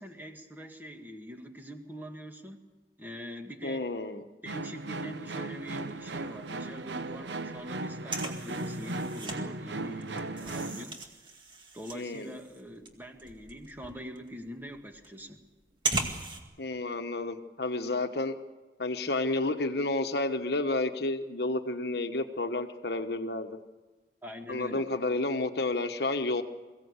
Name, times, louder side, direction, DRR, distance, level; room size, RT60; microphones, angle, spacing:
voice 1, 0.0-2.6 3.0-3.9 4.4-11.0 11.7-15.4 24.2-24.9, equal, 10° right, 4 dB, 1.8 m, -44 dB
voice 2, 3.6-4.3 11.9-12.3 16.6-18.4 18.8-23.6 24.5-26.4, left 2 dB, 60° left, 8 dB, 1.2 m, -31 dB
sound 1, 4.5-10.8, right 2 dB, 75° right, 0.9 m, -37 dB
sound 2, 5.6-6.5 6.8-6.9 7.1-9.4 9.8-16.4, right 3 dB, 25° right, 2.1 m, -38 dB
sound 3, 10.4-10.8 11.9-12.3 13.3-14.1 14.9-15.2, equal, 10° left, 5.4 m, -58 dB
23.0 x 16.5 x 8.2 m, 1.2 s
head